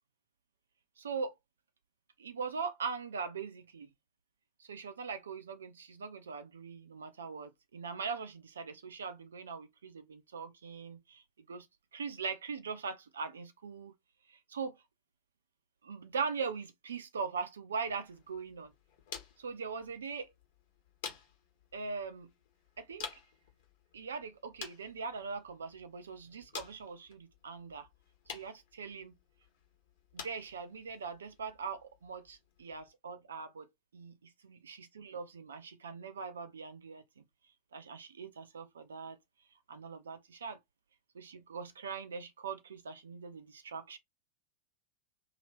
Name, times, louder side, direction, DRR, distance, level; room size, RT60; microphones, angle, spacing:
voice 1, 1.0-1.3 2.2-3.9 4.6-11.7 11.9-13.9 14.3-14.8 15.8-18.7 19.4-20.3 21.7-22.3 22.8-23.1 23.9-27.9 28.3-29.1 30.1-33.7 33.9-37.2 37.7-39.2 39.7-40.6 41.1-44.0, right 5 dB, 70° right, 0.7 m, -41 dB
sound 1, 17.9-32.9, left 6 dB, 50° left, 1.4 m, -51 dB
2.9 x 2.8 x 3.1 m
figure-of-eight pair, 90°, 0 cm